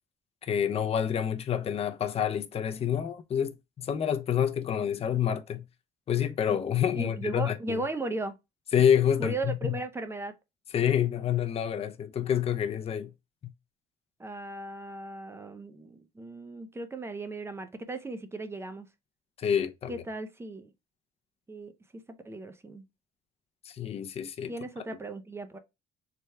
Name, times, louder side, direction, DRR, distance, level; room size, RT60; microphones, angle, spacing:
voice 1, 0.4-5.6 6.1-7.8 8.7-9.8 10.7-13.1 13.4-13.5 19.4-20.0 23.6-24.5, left 9 dB, 35° left, 0.5 m, -28 dB
voice 2, 7.0-8.3 9.2-10.3 14.2-18.9 19.9-20.7 21.5-21.7 22.1-22.8 24.5-25.6, right 2 dB, 15° right, 0.6 m, -36 dB
3.4 x 2.3 x 4.2 m
cardioid pair, 110°, 17 cm